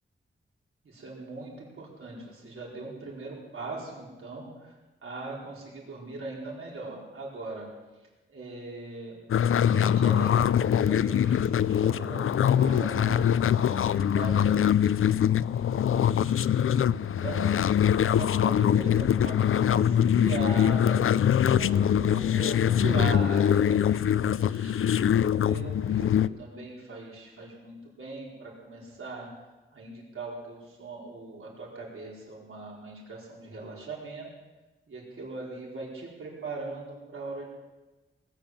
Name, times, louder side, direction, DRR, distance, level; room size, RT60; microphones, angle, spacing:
voice 1, 0.8-4.7 5.0-7.7 8.3-9.2 9.7-17.8 18.1-21.0 21.5-25.0 25.3-29.3 29.7-34.3 34.9-37.5, right 3 dB, 90° right, -4 dB, 4.5 m, -40 dB
sound 1, 9.3-26.3, left 9 dB, 85° left, 0.4 m, -23 dB
19.5 x 8.7 x 7.5 m, 1.2 s
wide cardioid pair, 130°, 21 cm